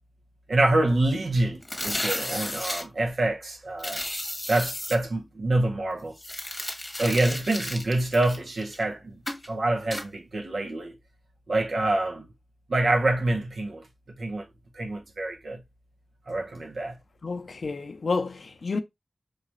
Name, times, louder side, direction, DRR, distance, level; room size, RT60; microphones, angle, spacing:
voice 1, 0.5-4.0 4.5-6.1 7.0-9.2 9.5-10.9 11.5-12.3 12.7-13.8 14.2-14.4 14.7-15.6 16.3-17.0, right 2 dB, 80° right, 0.9 m, -26 dB
sound 1, 1.6-2.8 3.8-5.0 6.2-8.8 9.3-9.5 9.9-10.1, left 1 dB, 20° left, 1.0 m, -33 dB
voice 2, 17.2-18.8, left 4 dB, 75° left, 0.4 m, -30 dB
4.8 x 2.4 x 3.0 m
cardioid pair, 50°, 0 cm